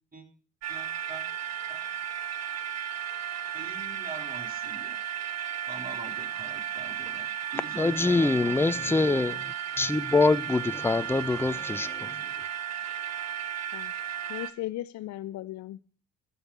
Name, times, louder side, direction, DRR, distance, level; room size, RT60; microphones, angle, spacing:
sound 1, 0.6-14.5, right 9 dB, 55° right, 1.2 m, -34 dB
voice 1, 0.7-1.2 1.7-1.8 3.5-5.0 5.7-8.5, right 3 dB, 25° right, 3.8 m, -44 dB
voice 2, 7.8-12.2, left 3 dB, 5° left, 0.7 m, -25 dB
voice 3, 8.4-9.4 13.7-13.9 14.3-15.9, left 14 dB, 55° left, 0.7 m, -38 dB
14.0 x 5.7 x 8.0 m
supercardioid pair, 70°, 32 cm